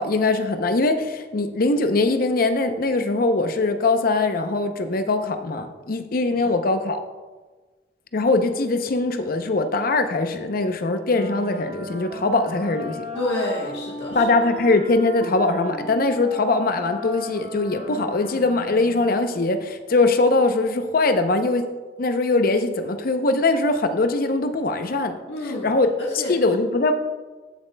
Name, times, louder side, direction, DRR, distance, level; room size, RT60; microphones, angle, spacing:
voice 1, 0.0-7.0 8.1-13.0 14.1-21.7 22.0-25.2 25.4-25.9 26.3-26.9, left 3 dB, 55° left, 8 dB, 0.6 m, -21 dB
Wind instrument woodwind instrument, 11.0-19.2, equal, 35° right, 2.1 m, -37 dB
voice 2, 13.2-14.2 25.3-25.7 26.0-26.3, left 2 dB, 80° left, -4 dB, 1.2 m, -28 dB
14.5 x 7.2 x 2.2 m, 1.3 s
head